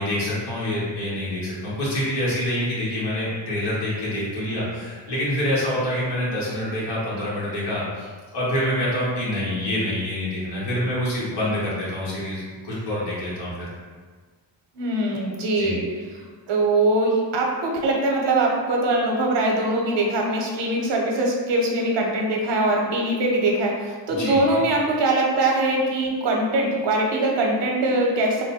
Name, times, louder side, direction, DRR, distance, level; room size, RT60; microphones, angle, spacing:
voice 1, 0.0-13.7 15.5-15.7 24.2-24.6, left 1 dB, 60° left, -7 dB, 1.4 m, -26 dB
voice 2, 14.7-15.9 16.5-28.4, right 2 dB, 65° right, 0 dB, 0.8 m, -22 dB
3.1 x 2.1 x 4.0 m, 1.5 s
cardioid pair, 155°, 45 cm